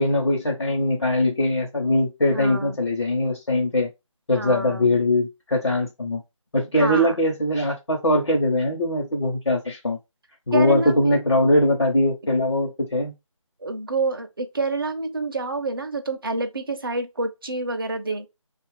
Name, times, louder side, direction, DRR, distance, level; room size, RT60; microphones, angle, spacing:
voice 1, 0.0-3.9 4.3-6.2 6.5-10.0 10.5-13.1, left 1 dB, 55° left, 0.9 m, -21 dB
voice 2, 2.3-2.8 4.3-4.9 6.8-7.2 10.5-11.2 13.6-18.3, right 3 dB, 45° right, 0.5 m, -28 dB
2.8 x 2.4 x 3.2 m
figure-of-eight pair, 160°, 17 cm